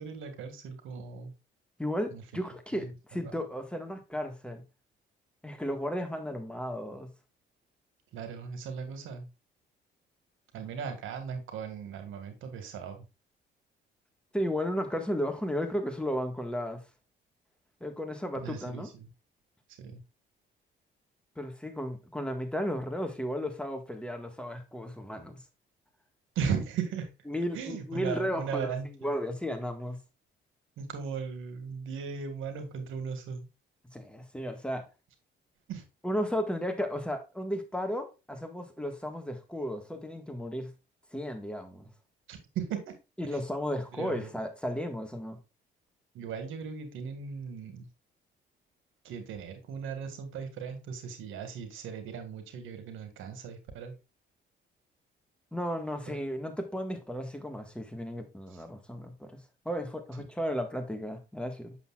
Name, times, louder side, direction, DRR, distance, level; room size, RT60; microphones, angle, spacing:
voice 1, 0.0-1.3 2.1-2.2 2.7-2.9 3.2-3.3 8.1-9.3 10.5-13.0 18.4-19.1 19.8-20.0 26.4-27.1 27.5-28.9 30.8-33.5 35.7-35.8 42.3-42.9 43.3-43.4 44.0-44.3 46.1-47.9 49.0-54.0 56.1-56.2 58.5-58.6, right 6 dB, 85° right, 1.8 m, -37 dB
voice 2, 1.8-4.6 5.4-7.1 14.3-16.8 17.8-18.9 21.4-25.4 27.3-28.7 29.0-30.0 33.9-34.8 36.0-40.7 41.1-41.9 43.2-45.4 55.5-61.8, equal, 5° left, 1.7 m, -34 dB
8.1 x 6.9 x 2.4 m
cardioid pair, 90°, 20 cm